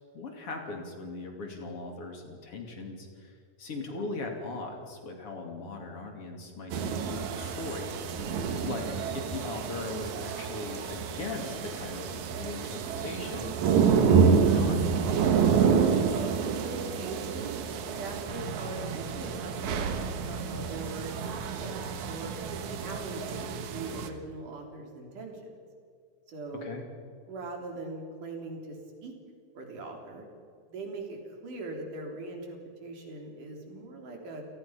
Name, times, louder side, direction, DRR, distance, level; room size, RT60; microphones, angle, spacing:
voice 1, 0.1-7.9 8.6-8.9 9.1-13.5 14.0-15.0 26.6-26.8, left 3 dB, 50° left, 3 dB, 3.5 m, -39 dB
sound 1, 6.7-24.1, right 6 dB, 70° right, 2.6 m, -28 dB
voice 2, 8.1-8.4 16.1-17.6 17.9-21.7 22.1-22.3 22.7-25.5 26.3-26.7 27.3-29.2 29.5-30.3 30.7-34.5, right 2 dB, 85° right, 2 dB, 5.0 m, -41 dB
29.5 x 17.5 x 5.9 m, 2.2 s
omnidirectional pair, 3.5 m